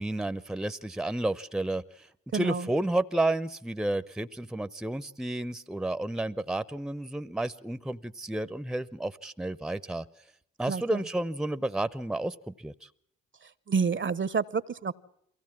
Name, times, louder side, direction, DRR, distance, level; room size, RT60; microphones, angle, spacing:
voice 1, 0.0-2.1 2.3-10.0 10.6-12.7, right 1 dB, ahead, 15 dB, 0.7 m, -31 dB
voice 2, 2.3-2.7 10.7-11.0 13.7-14.9, right 5 dB, 35° right, 19 dB, 0.8 m, -29 dB
23.0 x 16.0 x 7.3 m, 0.70 s
hypercardioid pair, 45°, 33 cm